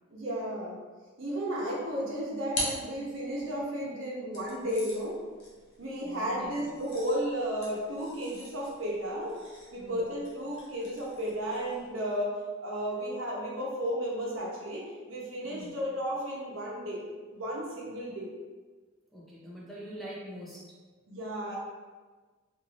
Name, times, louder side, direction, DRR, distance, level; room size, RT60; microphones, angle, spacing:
voice 1, 0.1-0.8 1.2-5.2 5.8-9.4 9.7-17.1 17.3-18.3 21.1-21.6, equal, 70° right, -4 dB, 0.8 m, -33 dB
sound 1, 1.8-3.6 4.3-11.9, left 1 dB, 55° left, 0.7 m, -43 dB
voice 2, 6.0-6.6 9.7-10.1 15.4-15.7 19.1-20.7, right 1 dB, ahead, -6 dB, 0.4 m, -44 dB
3.2 x 2.5 x 2.4 m, 1.4 s
head